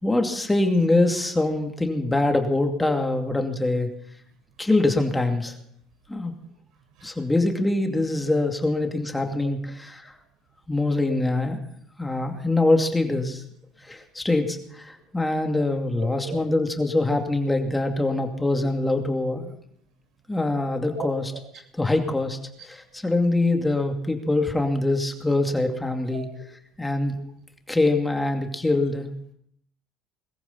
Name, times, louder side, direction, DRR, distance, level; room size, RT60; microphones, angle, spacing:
voice 1, 0.0-3.9 4.6-5.5 6.1-6.4 7.0-10.1 10.7-11.6 12.0-13.4 13.8-19.4 20.3-21.2 21.8-22.4 22.7-26.3 26.8-27.2 27.7-29.1, left 2 dB, 10° left, 4 dB, 2.5 m, -24 dB
voice 2, 6.4-7.2 9.4-9.5 16.0-16.4 19.4-19.5 20.9-21.4 26.1-26.2 27.1-27.2, right 7 dB, 70° right, 6 dB, 4.1 m, -39 dB
21.0 x 14.5 x 4.1 m, 0.68 s
hypercardioid pair, 75°, 0 cm